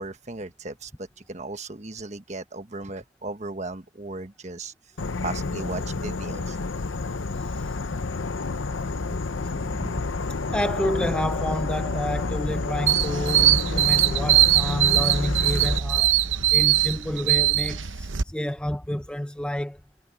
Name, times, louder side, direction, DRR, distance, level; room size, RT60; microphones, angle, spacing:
voice 1, 0.0-4.7 5.2-6.6, right 3 dB, 35° right, 1.4 m, -36 dB
Insect / Frog, 5.0-15.8, left 3 dB, 75° left, 0.8 m, -29 dB
voice 2, 7.4-7.8 9.1-9.2 9.5-16.2 16.5-19.8, equal, 5° left, 0.6 m, -30 dB
sound 1, 12.9-18.2, right 12 dB, 75° right, 0.9 m, -21 dB
head